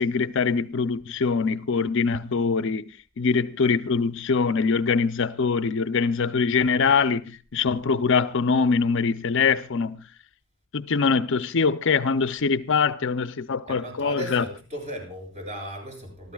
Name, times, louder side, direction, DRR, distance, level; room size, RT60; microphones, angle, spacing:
voice 1, 0.0-2.8 3.2-10.0 10.7-14.5, left 5 dB, 60° left, 0.6 m, -23 dB
voice 2, 13.7-16.3, equal, 35° right, 7.7 m, -36 dB
27.5 x 13.5 x 2.4 m
head